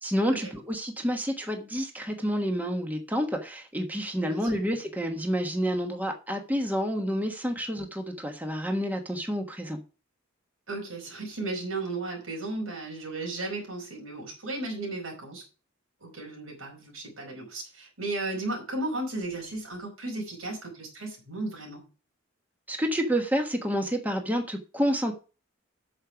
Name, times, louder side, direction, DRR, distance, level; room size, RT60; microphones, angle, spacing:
voice 1, 0.0-9.8 22.7-25.1, equal, 10° right, 1.3 m, -29 dB
voice 2, 4.2-4.6 10.7-15.4 16.0-21.8, right 2 dB, 85° right, 4.8 m, -35 dB
8.8 x 6.6 x 5.8 m
head